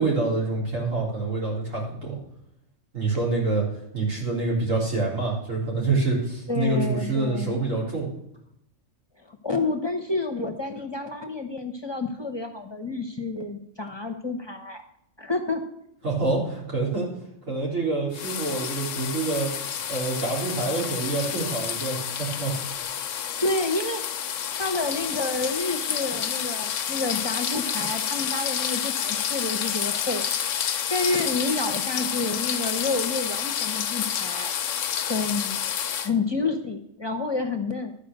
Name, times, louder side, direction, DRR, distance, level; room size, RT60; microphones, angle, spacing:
voice 1, 0.0-2.2 2.9-3.6 3.9-8.1 16.0-17.1 17.5-19.5 19.9-22.5 23.1-23.2, right 3 dB, 85° right, -4 dB, 4.1 m, -26 dB
voice 2, 6.5-7.6 9.3-14.8 15.2-15.6 23.4-24.0 24.3-30.2 30.6-35.6 36.0-37.9, left 3 dB, 25° left, 4 dB, 0.8 m, -29 dB
sound 1, 18.1-36.1, left 8 dB, 80° left, 1.1 m, -29 dB
12.5 x 5.0 x 6.7 m, 0.78 s
omnidirectional pair, 1.3 m